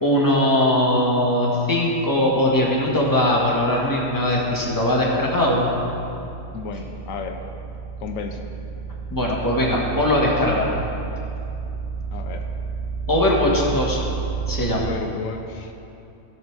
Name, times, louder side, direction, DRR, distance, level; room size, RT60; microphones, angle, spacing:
voice 1, 0.0-5.7 9.1-10.7 13.1-14.0 14.5-14.9, left 1 dB, 15° left, -4 dB, 1.5 m, -20 dB
sound 1, 1.9-14.9, right 5 dB, 55° right, 1.6 m, -32 dB
voice 2, 6.5-7.3 8.0-8.4 12.1-12.5 14.7-15.8, left 5 dB, 80° left, 5 dB, 1.1 m, -32 dB
15.0 x 6.1 x 4.6 m, 2.7 s
omnidirectional pair, 1.4 m